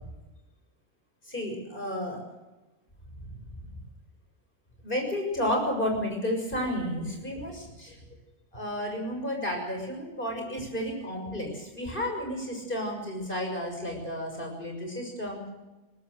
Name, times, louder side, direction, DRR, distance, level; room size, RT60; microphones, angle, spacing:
voice 1, 1.3-2.2 4.8-8.0 8.5-15.4, equal, 50° left, 2 dB, 6.8 m, -32 dB
21.5 x 18.5 x 6.6 m, 1.1 s
omnidirectional pair, 1.2 m